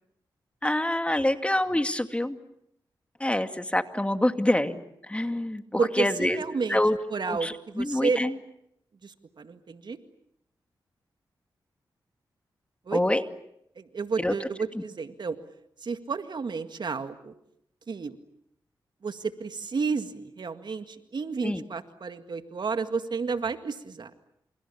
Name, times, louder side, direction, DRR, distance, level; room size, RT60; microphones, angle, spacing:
voice 1, 0.6-2.4 3.2-6.4 6.7-7.0 7.3-8.3 12.9-13.2 14.2-14.3 21.4-21.6, left 1 dB, 15° left, 8 dB, 2.2 m, -26 dB
voice 2, 5.8-6.8 7.1-8.2 9.0-10.0 12.9-13.0 13.8-15.4 15.8-17.3 17.9-18.2 19.0-24.1, right 5 dB, 60° right, 9 dB, 2.0 m, -31 dB
29.0 x 28.0 x 7.1 m, 0.77 s
cardioid pair, 55°, 8 cm